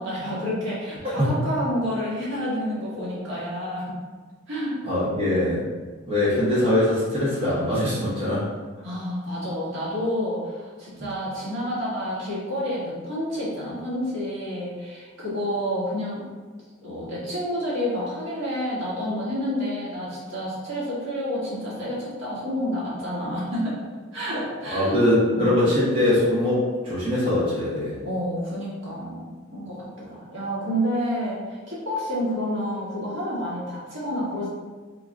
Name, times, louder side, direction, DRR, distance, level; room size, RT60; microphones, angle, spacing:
voice 1, 0.0-3.9 4.5-4.8 8.8-16.2 16.8-23.8 24.1-25.0 25.3-25.6 28.0-34.5, equal, 75° right, -8 dB, 1.5 m, -29 dB
voice 2, 4.8-5.7 6.1-8.5 11.0-11.1 24.7-28.0, left 1 dB, 25° right, -10 dB, 1.2 m, -22 dB
3.8 x 2.7 x 3.6 m, 1.4 s
head